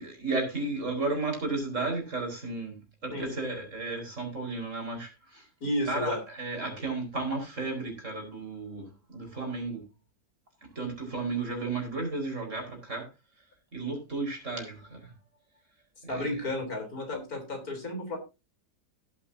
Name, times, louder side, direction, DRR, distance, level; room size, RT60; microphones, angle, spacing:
voice 1, 0.0-5.5 5.9-9.9 10.7-13.1 13.7-15.1 16.0-16.4, right 3 dB, 50° right, 5.1 m, -33 dB
voice 2, 5.6-6.2 16.1-18.2, left 1 dB, 65° left, 4.2 m, -32 dB
17.0 x 8.6 x 2.7 m
omnidirectional pair, 1.7 m